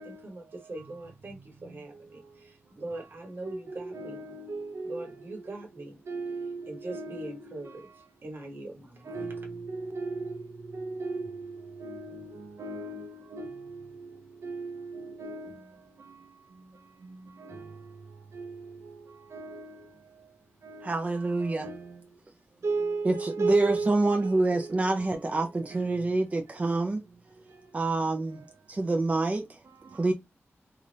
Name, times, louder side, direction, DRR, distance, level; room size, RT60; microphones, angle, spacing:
voice 1, 0.0-4.2 4.8-6.0 6.7-9.2, right 2 dB, 50° right, 1.1 m, -42 dB
voice 2, 3.4-7.8 9.0-15.7 16.0-16.2 17.0-19.9 20.6-22.0 22.6-26.2 26.5-26.7 28.0-28.4 29.7-30.1, right 3 dB, 75° right, 0.6 m, -37 dB
voice 3, 20.8-21.7 23.0-27.0 27.7-28.4 28.7-29.6 29.9-30.1, right 2 dB, 30° right, 0.5 m, -27 dB
4.0 x 2.4 x 3.2 m
wide cardioid pair, 135°, 5 cm